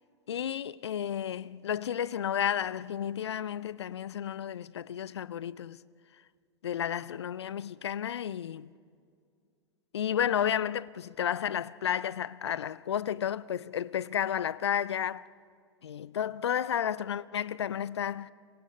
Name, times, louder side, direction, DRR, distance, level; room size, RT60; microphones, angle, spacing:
voice 1, 0.3-5.8 6.6-8.7 9.9-15.3 15.8-18.3, left 9 dB, 70° left, 0.5 m, -32 dB
29.5 x 25.5 x 5.4 m
figure-of-eight pair, 90°, 14 cm